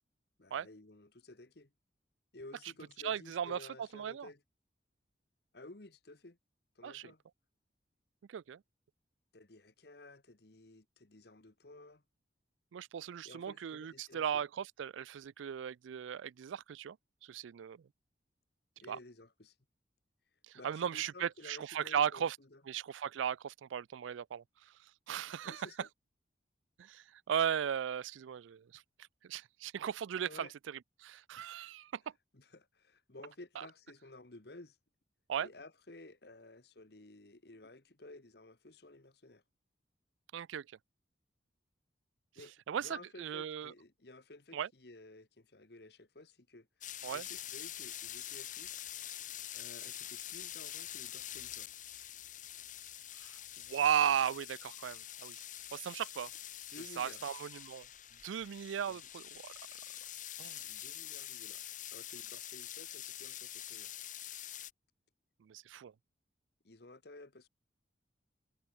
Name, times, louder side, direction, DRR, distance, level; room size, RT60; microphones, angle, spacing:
voice 1, 0.4-1.7 2.3-4.4 5.5-6.4 6.7-7.2 9.3-12.0 13.2-14.4 18.8-19.5 20.5-22.6 25.4-25.9 30.3-30.5 32.3-34.8 35.4-39.4 42.3-46.7 47.1-48.9 49.5-51.7 56.7-57.2 58.9-59.0 60.6-61.7 61.9-63.9 66.6-67.5, left 2 dB, 60° left, 1.4 m, -54 dB
voice 2, 3.0-3.6 3.9-4.3 6.8-7.1 8.3-8.6 12.7-17.0 17.2-17.8 18.9-19.0 20.5-22.4 22.7-24.7 25.1-25.7 26.8-28.8 29.2-32.0 33.6-33.7 35.3-35.5 40.3-40.7 42.7-43.7 44.5-44.7 47.0-47.2 53.2-53.4 53.7-55.4 55.7-56.3 57.0-57.9 58.2-59.5 60.4-60.6 65.4-65.9, right 8 dB, 90° right, 0.4 m, -37 dB
sound 1, 46.8-64.7, left 12 dB, 45° left, 2.2 m, -46 dB
head